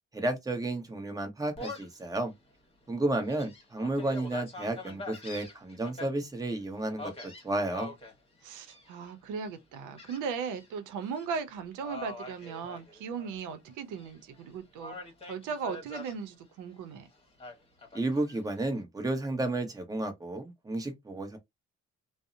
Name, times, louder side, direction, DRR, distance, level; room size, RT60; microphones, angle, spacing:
voice 1, 0.1-2.3 2.9-7.1 7.4-7.9 17.9-21.4, right 2 dB, 10° right, 0.9 m, -32 dB
Gull seagull, 1.6-2.0 2.5-2.6 3.1-6.1 7.0-8.1 8.7-9.1 10.0-10.7 11.0-11.3 11.8-13.4 13.7-14.4 14.8-16.2 17.4-18.4, left 2 dB, 20° left, 1.1 m, -44 dB
voice 2, 8.4-17.1, right 6 dB, 85° right, 0.6 m, -37 dB
2.6 x 2.0 x 2.5 m
cardioid pair, 90°, 30 cm